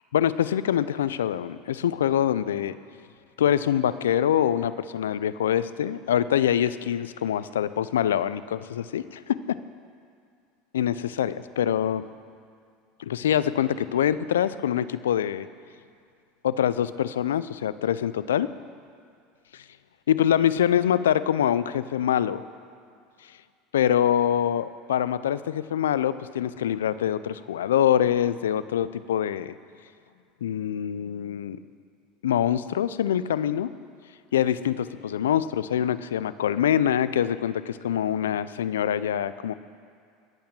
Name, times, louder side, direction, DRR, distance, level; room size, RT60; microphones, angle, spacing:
voice 1, 0.1-2.8 3.4-9.4 10.7-12.0 13.0-15.5 16.4-18.5 19.5-19.6 20.1-22.4 23.7-29.5 30.4-31.6 32.2-33.7 34.3-39.5, left 10 dB, 85° left, 15 dB, 0.5 m, -24 dB
21.0 x 8.7 x 7.3 m, 2.3 s
hypercardioid pair, 80°, 0 cm